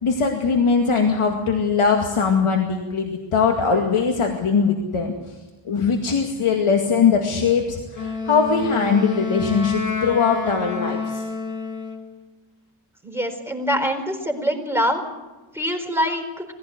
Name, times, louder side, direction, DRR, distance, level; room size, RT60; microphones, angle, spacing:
voice 1, 0.0-5.4 5.7-11.2, left 5 dB, 80° left, 2 dB, 2.3 m, -21 dB
Wind instrument woodwind instrument, 7.9-12.2, left 4 dB, 35° left, 2.1 m, -28 dB
voice 2, 13.0-15.0 15.5-16.4, equal, 5° right, 5 dB, 4.4 m, -24 dB
21.0 x 16.0 x 9.4 m, 1.2 s
wide cardioid pair, 105°, 50 cm